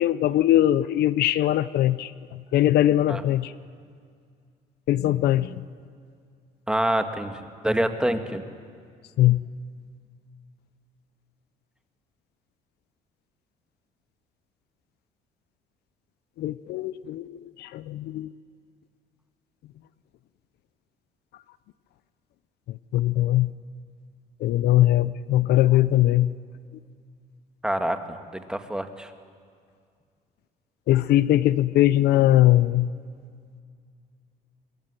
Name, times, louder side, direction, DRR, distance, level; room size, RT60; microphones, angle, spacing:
voice 1, 0.0-3.5 4.9-5.6 9.2-9.4 16.4-18.3 22.9-23.5 24.4-26.3 30.9-32.9, left 14 dB, 75° left, 16 dB, 0.7 m, -21 dB
voice 2, 6.7-8.4 27.6-29.1, right 1 dB, 5° right, 7 dB, 2.0 m, -26 dB
25.0 x 22.5 x 9.9 m, 2.1 s
cardioid pair, 110°, 17 cm